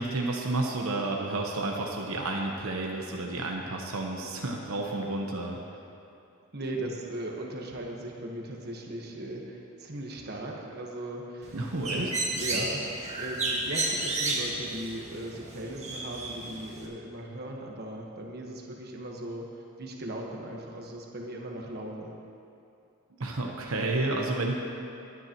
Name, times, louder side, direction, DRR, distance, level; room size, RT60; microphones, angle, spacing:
voice 1, 0.0-5.6 11.5-12.1 12.5-12.6 23.1-24.5, right 2 dB, 75° right, 0 dB, 1.0 m, -31 dB
voice 2, 6.5-11.6 11.9-12.1 12.4-19.5 19.8-22.1, right 1 dB, 50° right, 0 dB, 1.3 m, -38 dB
Bird, 11.4-16.9, right 2 dB, 30° right, 1.7 m, -32 dB
20.0 x 9.7 x 3.0 m, 2.6 s
head